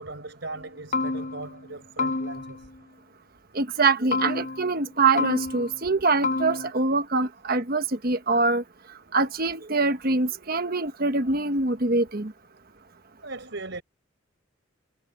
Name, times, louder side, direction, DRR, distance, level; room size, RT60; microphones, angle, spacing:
voice 1, 0.0-2.7 13.2-13.8, right 2 dB, 60° right, 5.0 m, -38 dB
sound 1, 0.6-0.7 0.9-1.6 2.0-2.7 4.1-4.8 5.2-5.9 6.2-6.7, left 3 dB, 35° left, 0.5 m, -29 dB
voice 2, 3.5-8.6 9.1-12.3, right 3 dB, 45° right, 1.3 m, -24 dB
head